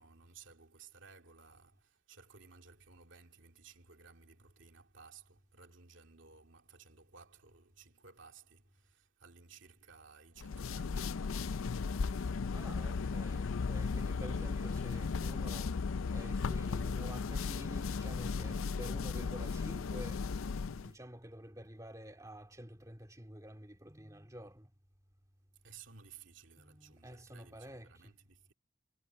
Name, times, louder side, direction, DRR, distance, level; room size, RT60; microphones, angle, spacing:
voice 1, 0.0-12.4 25.6-28.5, right 5 dB, 70° right, 2.5 m, -58 dB
sound 1, 10.4-20.9, left 4 dB, 90° left, 0.5 m, -36 dB
voice 2, 12.5-15.8 16.1-20.3 20.7-24.7 26.6-28.1, equal, 15° right, 2.3 m, -50 dB
head